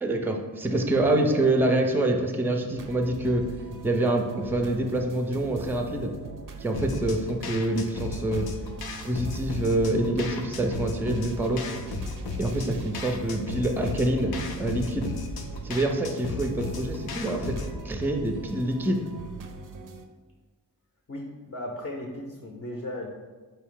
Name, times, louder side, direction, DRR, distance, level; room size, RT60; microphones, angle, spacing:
voice 1, 0.0-3.4 3.8-6.1 6.6-8.4 9.0-11.6 12.4-14.3 14.6-15.1 15.6-17.5 17.8-19.0, right 1 dB, 5° right, 4 dB, 0.4 m, -26 dB
sound 1, 2.8-20.1, right 4 dB, 60° right, 0.5 m, -42 dB
sound 2, 6.7-17.8, left 3 dB, 85° left, 0.5 m, -35 dB
voice 2, 21.1-23.1, left 1 dB, 40° left, 0 dB, 0.6 m, -36 dB
4.5 x 2.7 x 3.6 m, 1.3 s
wide cardioid pair, 80°, 36 cm